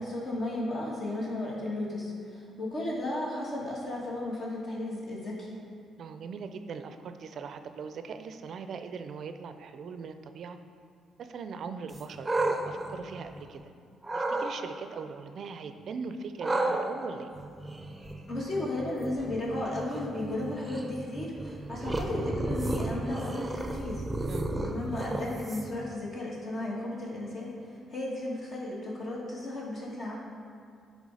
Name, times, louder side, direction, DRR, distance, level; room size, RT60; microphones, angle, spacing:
voice 1, 0.0-5.5 18.3-24.0 24.5-27.5 27.9-30.2, left 1 dB, 50° left, -5 dB, 1.8 m, -34 dB
voice 2, 6.0-10.6 11.2-13.6 14.1-17.3 24.3-24.5, right 5 dB, 60° right, 9 dB, 0.4 m, -40 dB
sound 1, 11.9-13.6 14.0-14.5 16.4-25.9, right 2 dB, 15° right, 0.7 m, -33 dB
9.6 x 3.5 x 4.9 m, 2.3 s
cardioid pair, 90°, 0 cm